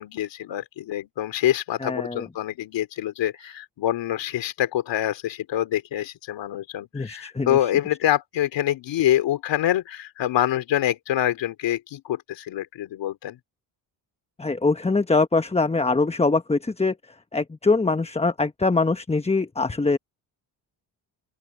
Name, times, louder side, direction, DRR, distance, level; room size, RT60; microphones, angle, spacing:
voice 1, 0.0-13.4, left 12 dB, 75° left, 3.1 m, -26 dB
voice 2, 1.8-2.3 6.9-7.7 14.4-20.0, left 3 dB, 15° left, 1.0 m, -23 dB
open air
supercardioid pair, 65°, 44 cm